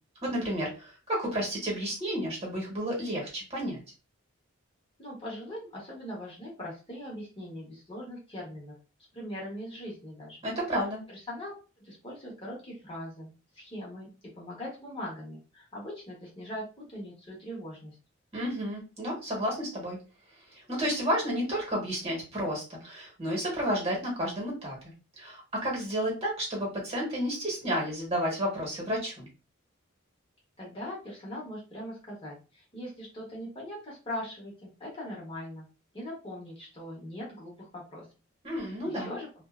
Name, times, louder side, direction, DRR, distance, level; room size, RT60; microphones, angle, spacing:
voice 1, 0.2-3.8 10.4-11.0 18.3-20.0 20.5-29.3 38.4-39.1, equal, 30° right, -2 dB, 1.1 m, -31 dB
voice 2, 5.0-8.8 9.1-10.4 11.1-11.5 11.8-14.1 14.3-18.0 30.6-35.6 35.9-38.0 38.6-39.3, left 1 dB, 25° left, -4 dB, 0.9 m, -41 dB
2.5 x 2.2 x 2.3 m, 0.32 s
head